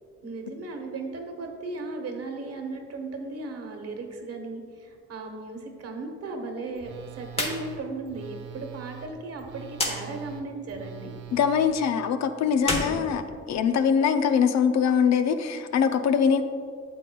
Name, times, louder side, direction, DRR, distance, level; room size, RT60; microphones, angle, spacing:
voice 1, 0.2-11.2 12.8-13.2, right 3 dB, 55° right, 3 dB, 1.2 m, -36 dB
Telephone, 6.7-11.7, right 11 dB, 70° right, 0.8 m, -43 dB
sound 1, 7.3-7.6 7.9-8.0 9.7-10.0 12.5-13.9, left 2 dB, 20° left, 1.2 m, -29 dB
voice 2, 11.3-13.2 13.5-16.4, left 7 dB, 60° left, 9 dB, 0.5 m, -23 dB
8.7 x 7.6 x 2.3 m, 2.2 s
cardioid pair, 90°, 30 cm